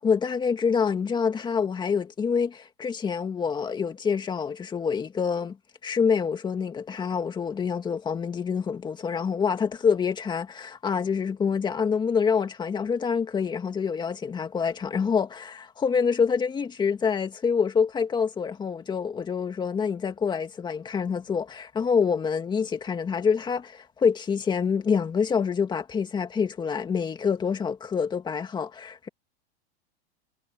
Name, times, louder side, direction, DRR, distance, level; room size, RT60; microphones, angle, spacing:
voice 1, 0.0-5.6 5.8-29.1, left 6 dB, 15° left, 2.1 m, -26 dB
supercardioid pair, 150°, 32 cm